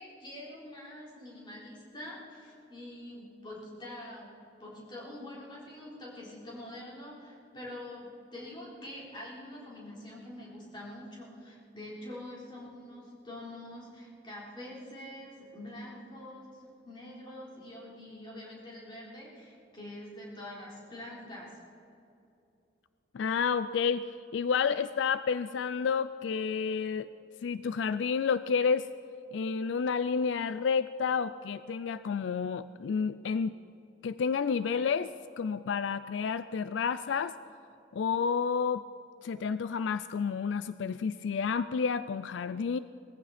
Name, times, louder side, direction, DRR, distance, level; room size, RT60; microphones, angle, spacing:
voice 1, 0.0-4.3 4.6-21.6, left 1 dB, 25° left, -5 dB, 3.8 m, -45 dB
voice 2, 23.1-27.1 27.4-28.9 29.3-33.6 34.0-37.4 37.9-38.8 39.2-42.8, left 6 dB, 75° left, 14 dB, 0.4 m, -30 dB
20.0 x 15.0 x 4.2 m, 2.7 s
head